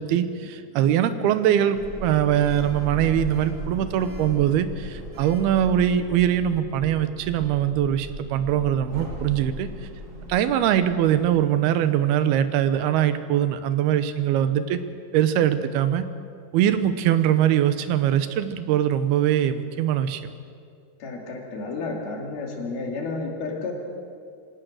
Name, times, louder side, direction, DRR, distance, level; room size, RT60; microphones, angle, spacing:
voice 1, 0.0-9.7 10.3-14.8 15.1-16.0 16.5-20.2, right 10 dB, 90° right, 11 dB, 2.9 m, -22 dB
Sliding door, 1.7-11.3, right 1 dB, 25° right, 2.2 m, -38 dB
voice 2, 21.0-23.7, left 3 dB, 75° left, 1 dB, 4.5 m, -31 dB
26.0 x 17.5 x 6.4 m, 2.3 s
omnidirectional pair, 4.4 m